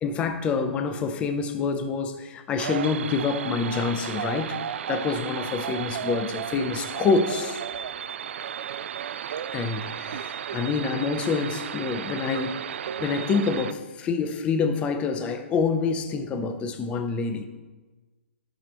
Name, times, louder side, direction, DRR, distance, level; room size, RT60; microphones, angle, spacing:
voice 1, 0.0-4.6 4.9-7.6 9.5-12.6 13.0-17.5, left 5 dB, 15° left, 0.6 m, -27 dB
sound 1, 2.6-13.7, right 9 dB, 70° right, 0.3 m, -33 dB
14.5 x 6.0 x 3.1 m
hypercardioid pair, 155°, 7 cm